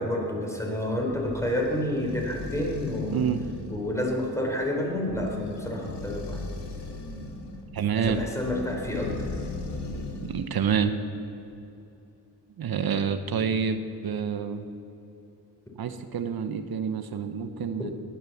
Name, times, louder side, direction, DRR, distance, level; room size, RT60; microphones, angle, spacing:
voice 1, 0.0-3.2 3.7-6.4 8.0-9.5, left 1 dB, 5° left, 0 dB, 3.9 m, -29 dB
sound 1, 1.0-10.6, left 2 dB, 85° left, 2.1 m, -38 dB
voice 2, 3.1-3.4 7.7-8.2 10.3-11.0 12.6-14.7 15.8-17.9, right 7 dB, 65° right, 8 dB, 1.0 m, -28 dB
19.0 x 10.5 x 7.2 m, 2.9 s
cardioid pair, 95°, 40 cm